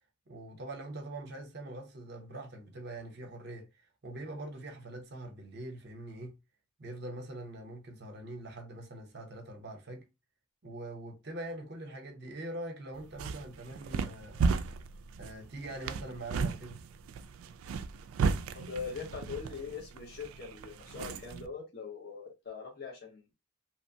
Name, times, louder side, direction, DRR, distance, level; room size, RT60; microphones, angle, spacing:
voice 1, 0.3-6.4 6.8-10.1 10.6-14.4 15.2-16.8, right 1 dB, 50° right, 0.7 m, -43 dB
sound 1, 12.9-21.5, right 4 dB, 80° right, 0.3 m, -35 dB
voice 2, 18.5-23.3, left 5 dB, 50° left, 0.9 m, -42 dB
2.9 x 2.1 x 2.6 m
head